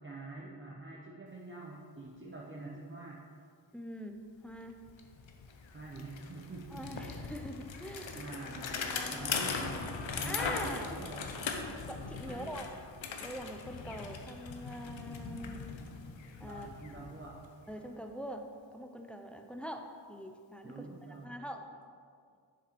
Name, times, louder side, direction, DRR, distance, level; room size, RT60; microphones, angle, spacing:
voice 1, 0.0-3.2 5.7-7.1 8.1-11.3 12.2-12.6 16.4-17.4 20.6-21.4, right 3 dB, 25° right, -4 dB, 0.8 m, -46 dB
voice 2, 3.7-4.8 6.7-8.3 8.7-9.9 10.2-10.9 11.9-12.7 13.2-15.8 16.4-16.7 17.1-17.2 17.7-18.5 18.7-20.9 21.2-21.7, equal, 5° left, 4 dB, 0.5 m, -44 dB
Bicycle, 4.5-4.6 4.9-17.8, left 5 dB, 90° left, 0.9 m, -40 dB
7.5 x 6.8 x 4.5 m, 2.2 s
wide cardioid pair, 125°, 44 cm